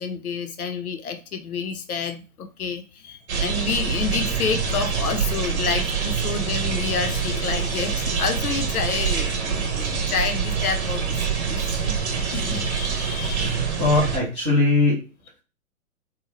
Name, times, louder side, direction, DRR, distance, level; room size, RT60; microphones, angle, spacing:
voice 1, 0.0-13.6, left 5 dB, 75° left, 0.7 m, -29 dB
sound 1, 3.3-14.2, right 6 dB, 50° right, 0.8 m, -25 dB
voice 2, 13.3-15.1, left 2 dB, ahead, 0.4 m, -21 dB
2.8 x 2.2 x 3.0 m
figure-of-eight pair, 125°, 44 cm